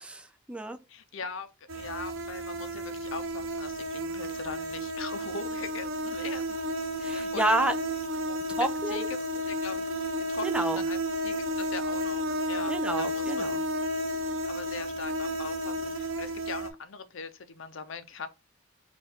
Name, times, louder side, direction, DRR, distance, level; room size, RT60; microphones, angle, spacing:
voice 1, 0.0-0.8 7.0-7.7 8.6-9.1 10.4-10.8 12.7-13.6, right 1 dB, 5° right, 0.3 m, -30 dB
voice 2, 0.9-6.6 7.0-7.7 8.3-8.4 8.9-9.2 9.4-9.9 10.3-11.0 11.2-13.6 14.4-18.3, left 4 dB, 75° left, 0.6 m, -41 dB
sound 1, 1.7-16.7, equal, 85° right, 0.8 m, -32 dB
4.3 x 2.5 x 3.5 m
head